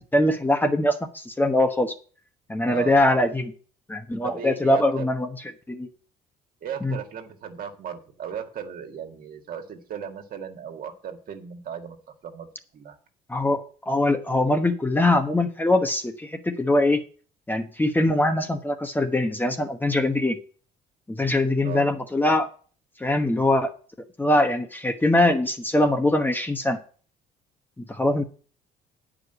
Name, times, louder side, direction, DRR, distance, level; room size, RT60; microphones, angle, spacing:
voice 1, 0.1-1.9 2.5-3.5 3.9-5.3 5.7-5.9 6.8-7.0 13.3-17.0 17.5-20.4 21.1-22.5 23.0-23.7 24.2-26.8 27.8-28.2, left 1 dB, 10° left, 6 dB, 1.1 m, -22 dB
voice 2, 2.7-3.0 4.2-5.1 6.6-12.0 12.2-12.5 12.7-13.0 21.6-21.9, right 8 dB, 55° right, 4 dB, 1.9 m, -36 dB
9.3 x 5.0 x 8.0 m, 0.41 s
cardioid pair, 110°, 17 cm